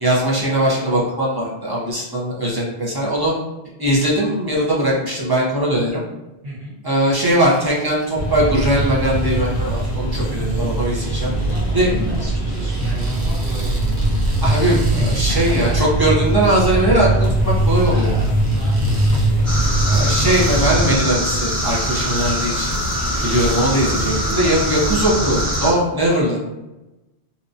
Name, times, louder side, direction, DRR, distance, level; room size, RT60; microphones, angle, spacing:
voice 1, 0.0-3.3 3.8-6.0 6.8-11.3 11.7-11.9 14.4-17.1 17.4-18.1 19.8-22.7 23.2-26.5, right 1 dB, 25° right, -6 dB, 0.5 m, -20 dB
voice 2, 6.4-6.7 11.0-13.8 14.9-15.5 17.9-19.0 19.3-19.6 22.9-23.2, left 1 dB, 60° right, -7 dB, 1.3 m, -32 dB
sound 1, 7.5-24.8, right 2 dB, 85° right, 1.0 m, -41 dB
sound 2, 8.2-20.8, right 1 dB, 60° left, 0.7 m, -20 dB
sound 3, 19.4-25.7, equal, ahead, 1.0 m, -22 dB
2.8 x 2.2 x 2.6 m, 1.0 s
omnidirectional pair, 1.1 m